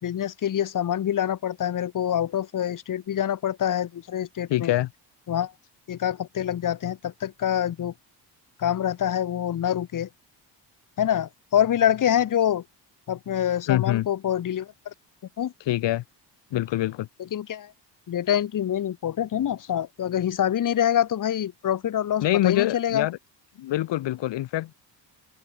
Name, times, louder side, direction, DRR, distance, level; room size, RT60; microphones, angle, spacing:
voice 1, 0.0-4.7 5.3-5.5 5.9-7.9 8.6-10.1 11.0-12.6 13.1-14.9 15.4-15.5 17.3-17.7 18.1-23.1, left 10 dB, 45° left, 4.4 m, -26 dB
voice 2, 4.5-4.9 13.7-14.1 15.7-16.0 16.5-17.1 22.2-23.2 23.6-24.7, left 14 dB, 80° left, 4.1 m, -24 dB
open air
cardioid pair, 175°, 43 cm